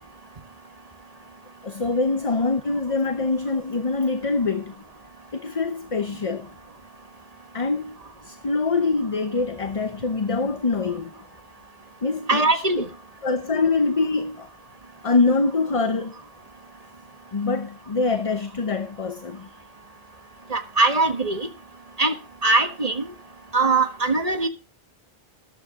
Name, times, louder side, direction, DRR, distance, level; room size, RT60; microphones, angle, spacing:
voice 1, 1.6-4.7 5.3-6.5 7.5-8.0 8.2-11.1 12.0-12.6 13.2-14.5 15.0-16.1 17.3-19.5, left 3 dB, 35° left, 0.9 m, -24 dB
voice 2, 12.3-12.9 20.5-21.5 22.0-22.1 22.4-23.1 23.5-24.5, right 3 dB, 35° right, 1.6 m, -21 dB
13.5 x 11.5 x 3.7 m
omnidirectional pair, 1.1 m